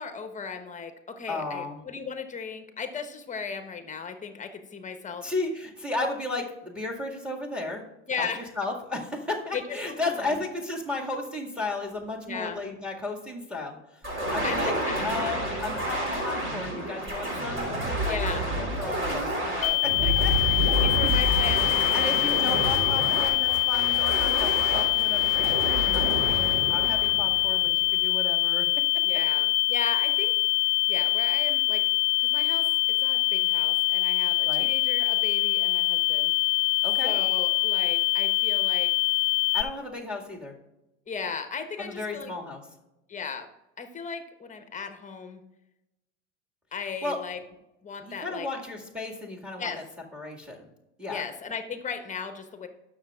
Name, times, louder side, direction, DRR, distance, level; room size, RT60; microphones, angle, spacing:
voice 1, 0.0-5.2 8.1-8.5 9.5-9.8 10.0-10.4 12.3-12.6 14.4-15.4 18.1-18.4 20.0-20.1 20.8-22.3 25.6-25.9 29.0-30.3 30.9-31.8 32.2-32.7 33.0-36.3 37.0-38.9 41.1-42.3 43.1-43.5 43.8-45.4 46.7-47.4 47.8-48.5 49.6-49.8 51.1-52.7, left 5 dB, 20° left, 8 dB, 1.1 m, -36 dB
voice 2, 1.3-1.8 5.2-7.8 8.2-14.7 15.0-19.9 20.2-21.1 21.9-28.6 34.4-34.7 36.8-37.1 39.5-40.5 41.8-42.6 47.0-47.2 48.1-49.7 50.1-50.7 51.0-51.2, left 2 dB, 5° right, 0 dB, 2.0 m, -34 dB
sound 1, 14.0-27.9, right 1 dB, 35° right, 3.4 m, -29 dB
sound 2, 19.6-39.6, left 26 dB, 40° left, 0.8 m, -24 dB
19.5 x 6.5 x 2.5 m, 0.95 s
hypercardioid pair, 85°, 36 cm